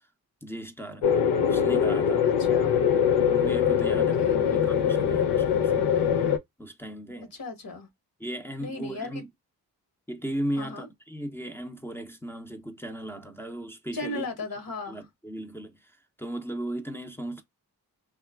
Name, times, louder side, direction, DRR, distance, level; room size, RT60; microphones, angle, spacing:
voice 1, 0.4-1.1 1.4-2.3 3.3-5.9 6.6-7.3 8.2-9.3 10.1-14.3 14.9-15.9 16.2-17.4, right 1 dB, 5° left, 0.6 m, -36 dB
sound 1, 1.0-6.4, left 8 dB, 85° left, 0.6 m, -23 dB
voice 2, 2.2-2.8 3.8-4.7 7.3-7.9 8.6-9.2 10.6-10.9 13.9-15.0, left 2 dB, 60° left, 1.2 m, -36 dB
2.9 x 2.3 x 2.2 m
supercardioid pair, 50°, 39 cm